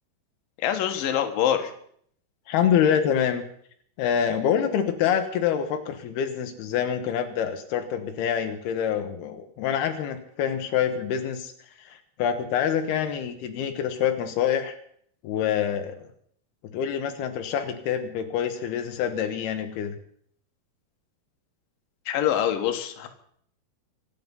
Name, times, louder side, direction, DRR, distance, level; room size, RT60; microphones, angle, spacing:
voice 1, 0.6-1.7 22.1-23.1, left 10 dB, 70° left, 6 dB, 3.1 m, -25 dB
voice 2, 2.5-3.4 4.0-11.5 11.8-14.8 15.2-16.0 16.7-20.0, left 8 dB, 85° left, 6 dB, 3.1 m, -26 dB
24.5 x 9.5 x 5.4 m, 0.64 s
omnidirectional pair, 4.4 m